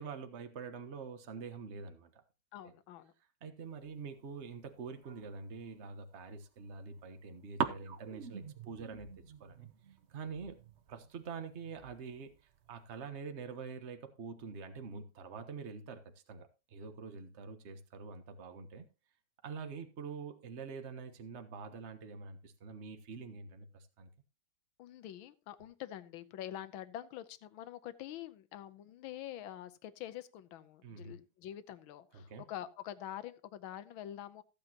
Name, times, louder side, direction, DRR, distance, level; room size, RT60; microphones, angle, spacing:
voice 1, 0.0-2.2 3.4-9.1 9.4-9.7 10.1-10.6 10.9-12.4 12.7-18.9 19.4-24.1 30.8-31.1 32.1-32.4, right 5 dB, 40° right, 1.3 m, -46 dB
voice 2, 2.5-3.1 24.8-34.4, left 12 dB, 80° left, 1.6 m, -46 dB
sound 1, 3.6-5.8 6.3-7.2 7.6-13.1, right 7 dB, 65° right, 0.7 m, -44 dB
15.0 x 8.8 x 2.9 m
omnidirectional pair, 2.3 m